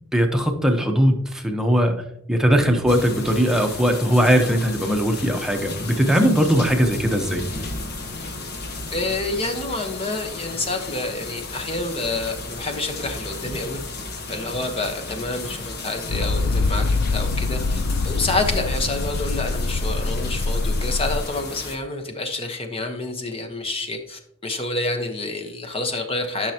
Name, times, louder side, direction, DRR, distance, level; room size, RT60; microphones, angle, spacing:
voice 1, 0.1-2.0 2.3-7.5, equal, 5° right, 2 dB, 1.0 m, -19 dB
sound 1, 2.9-21.8, left 3 dB, 50° left, 1.1 m, -34 dB
voice 2, 8.9-13.8 14.3-26.5, left 2 dB, 25° left, 5 dB, 1.1 m, -28 dB
sound 2, 16.1-21.2, left 3 dB, 80° left, 0.5 m, -24 dB
12.5 x 6.3 x 2.9 m, 0.75 s
head